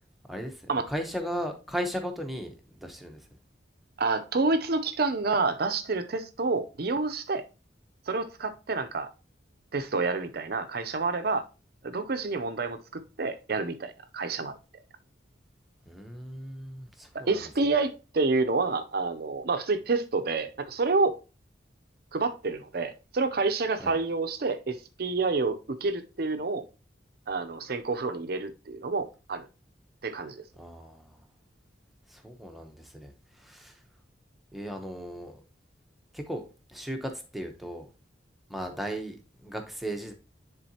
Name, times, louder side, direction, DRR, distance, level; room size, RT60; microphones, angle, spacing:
voice 1, 0.3-3.3 15.9-17.5 23.8-23.9 30.6-31.2 32.1-33.8 34.5-35.4 36.1-37.9 38.5-40.1, equal, ahead, 0.8 m, -37 dB
voice 2, 4.0-7.4 8.1-9.1 9.7-11.4 11.8-14.5 17.3-21.1 22.1-26.6 27.3-29.5 30.0-30.4, right 3 dB, 55° right, 0.6 m, -28 dB
10.0 x 3.7 x 2.8 m
head